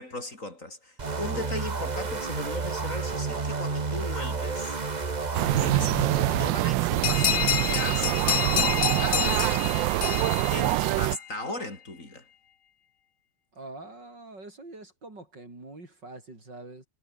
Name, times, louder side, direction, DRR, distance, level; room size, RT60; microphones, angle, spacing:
voice 1, 0.0-4.8 5.5-9.5 10.5-12.3, left 2 dB, 40° left, 5.3 m, -37 dB
sound 1, 1.0-6.5, right 4 dB, 25° right, 1.1 m, -31 dB
sound 2, 5.3-11.2, right 17 dB, 75° right, 1.2 m, -25 dB
sound 3, 7.0-11.3, left 10 dB, 55° left, 1.0 m, -28 dB
voice 2, 13.5-16.9, right 2 dB, 60° right, 7.0 m, -44 dB
omnidirectional pair, 2.2 m